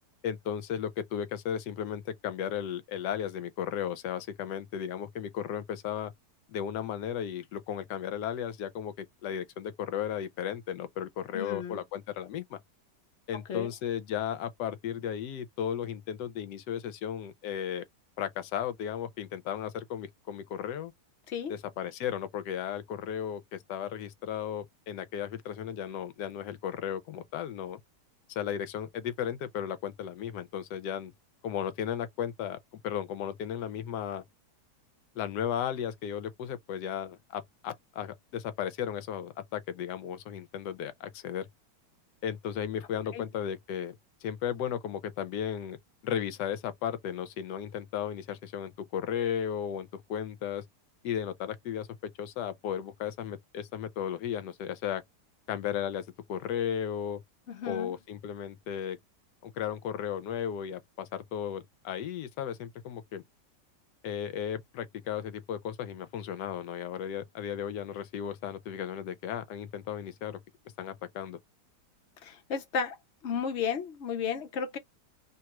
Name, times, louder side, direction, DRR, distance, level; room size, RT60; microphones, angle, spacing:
voice 1, 0.2-6.1 6.5-12.6 13.3-17.8 18.2-20.9 21.5-27.8 28.3-31.1 31.4-34.2 35.2-41.5 42.2-44.0 44.2-45.8 46.0-50.6 51.0-51.9 52.2-55.0 55.5-57.2 57.7-59.0 59.4-63.2 64.0-70.4 70.8-71.4, left 9 dB, 75° left, 1.2 m, -35 dB
voice 2, 11.3-11.8 13.5-13.7 21.3-21.5 43.1-43.2 57.5-58.0 72.2-73.0 73.2-74.8, left 6 dB, 55° left, 0.8 m, -33 dB
2.9 x 2.3 x 2.9 m
omnidirectional pair, 1.9 m